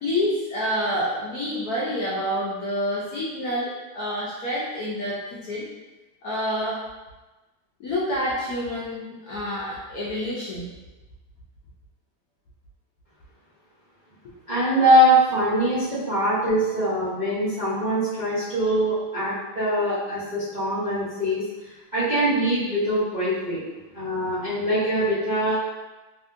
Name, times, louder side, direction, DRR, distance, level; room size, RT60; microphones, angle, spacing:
voice 1, 0.0-5.7 6.2-6.8 7.8-10.6, equal, 75° left, -7 dB, 0.8 m, -28 dB
voice 2, 14.5-21.4 21.9-23.6 23.9-25.6, equal, 80° right, -13 dB, 0.4 m, -22 dB
3.3 x 2.7 x 2.5 m, 1.1 s
omnidirectional pair, 2.3 m